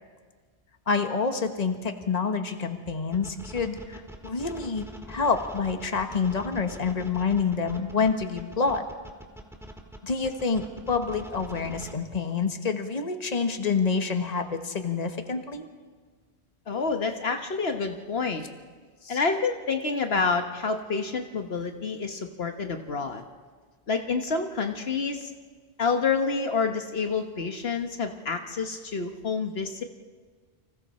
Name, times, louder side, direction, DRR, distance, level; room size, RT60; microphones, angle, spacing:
voice 1, 0.9-8.8 10.0-15.7 19.0-19.2, left 5 dB, 40° left, 6 dB, 1.5 m, -27 dB
sound 1, 3.1-11.9, right 1 dB, ahead, 2.1 m, -43 dB
voice 2, 16.7-18.4 19.1-23.2 23.9-25.3 25.8-29.8, left 4 dB, 70° left, 5 dB, 1.5 m, -28 dB
30.0 x 25.5 x 4.3 m, 1.5 s
omnidirectional pair, 1.1 m